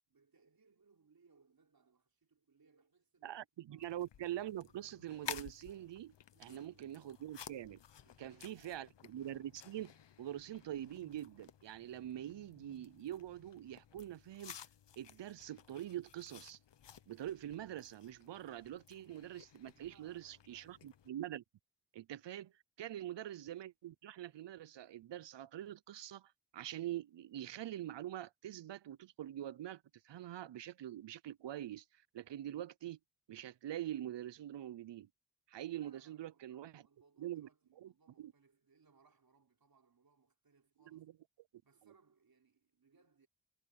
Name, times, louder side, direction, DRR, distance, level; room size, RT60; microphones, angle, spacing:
voice 1, 0.0-3.9 6.3-7.0 8.0-8.9 19.7-21.0 22.0-22.1 22.8-23.1 35.8-41.1 41.6-43.3, right 4 dB, 55° right, 4.8 m, -70 dB
voice 2, 3.2-6.1 6.4-7.8 8.2-9.9 10.2-14.6 15.0-16.6 17.1-21.4 21.9-22.5 22.8-31.8 32.1-33.0 33.3-35.1 35.5-36.8 37.2-37.5 37.8-37.9 38.2-38.3 40.9-41.1, right 12 dB, 90° right, 0.6 m, -44 dB
sound 1, 3.8-21.1, left 9 dB, 85° left, 1.0 m, -54 dB
wide cardioid pair, 130°, 42 cm